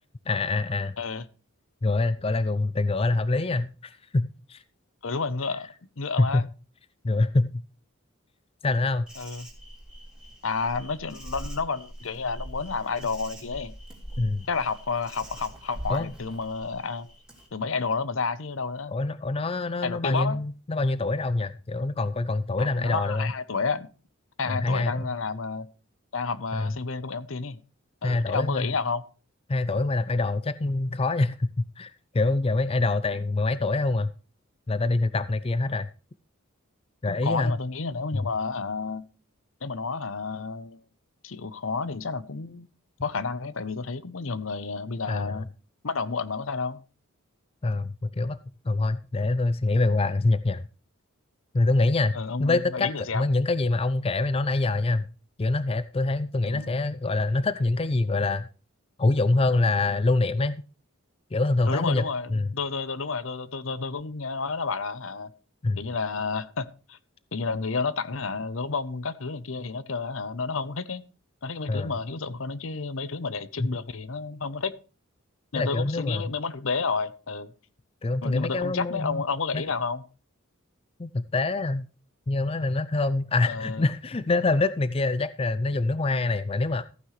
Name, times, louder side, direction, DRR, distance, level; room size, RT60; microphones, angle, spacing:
voice 1, 0.3-1.0 1.8-4.6 6.2-6.5 7.0-7.6 8.6-9.1 14.2-14.5 15.9-16.1 18.9-23.3 24.5-25.1 26.5-26.7 28.0-28.7 29.5-34.1 34.7-35.9 37.0-37.6 38.1-38.3 45.1-45.4 47.6-48.4 48.7-50.6 51.5-52.1 52.4-55.0 55.4-58.5 59.0-60.6 61.3-62.0 62.3-62.5 65.6-65.8 71.7-71.9 73.6-73.7 75.5-76.3 78.0-79.2 79.5-79.6 81.0-81.9 82.3-86.8, left 2 dB, 25° left, 0.4 m, -25 dB
voice 2, 5.0-5.7 6.0-6.5 9.2-9.5 10.4-13.7 14.5-17.1 17.5-18.9 19.8-20.4 22.6-23.9 24.4-25.7 26.1-27.6 28.0-29.0 37.2-39.0 39.6-40.8 41.2-42.7 43.0-45.5 45.8-46.8 52.1-53.3 56.5-56.7 61.7-65.3 65.8-67.0 67.3-71.1 71.4-74.7 75.5-77.5 78.2-80.0 83.5-83.8, left 4 dB, 65° left, 0.8 m, -30 dB
Insect, 9.1-17.5, right 1 dB, 5° right, 3.5 m, -42 dB
14.5 x 9.5 x 3.2 m
head